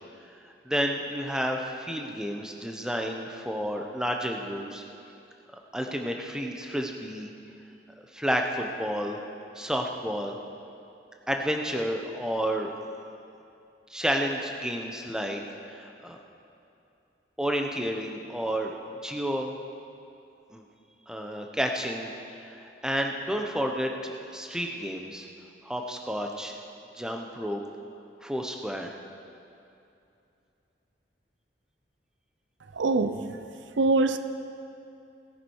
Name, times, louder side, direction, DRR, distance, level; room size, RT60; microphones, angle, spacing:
voice 1, 0.7-4.8 5.7-7.3 8.1-9.2 9.5-10.4 11.3-12.7 13.9-15.4 15.7-16.2 17.4-18.8 19.0-19.6 20.5-20.6 21.1-22.1 22.5-25.3 25.6-26.6 26.9-27.6 28.2-28.9, equal, 5° right, 2 dB, 0.8 m, -30 dB
voice 2, 32.7-33.2 33.8-34.2, right 3 dB, 85° right, 10 dB, 0.6 m, -23 dB
18.0 x 11.0 x 4.6 m, 2.7 s
head